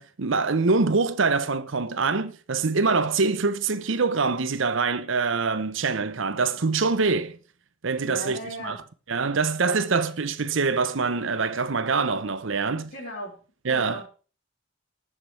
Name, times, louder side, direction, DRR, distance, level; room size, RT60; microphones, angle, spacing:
voice 1, 0.0-7.4 7.8-8.8 9.1-12.9 13.6-14.0, right 4 dB, 70° right, 0.8 m, -24 dB
voice 2, 8.0-8.8 9.6-9.8 12.9-13.4 13.7-14.1, right 1 dB, 50° left, 4.6 m, -35 dB
19.5 x 7.6 x 3.2 m
head